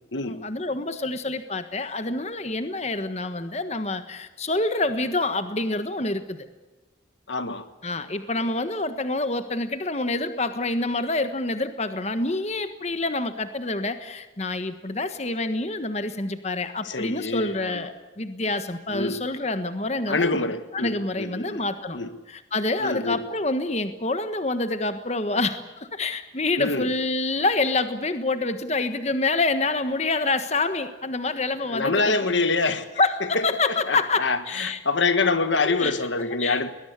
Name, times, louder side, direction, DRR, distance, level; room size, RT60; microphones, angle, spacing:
voice 1, 0.3-6.5 7.8-22.0 22.3-32.3 32.6-34.8 35.6-36.7, left 2 dB, 35° left, 1.4 m, -27 dB
voice 2, 7.3-7.6 16.8-17.9 18.9-19.2 20.1-21.6 21.9-22.1 22.8-23.2 26.6-26.9 31.7-32.8 33.9-36.7, left 3 dB, 85° left, 1.6 m, -25 dB
21.5 x 20.5 x 8.2 m
head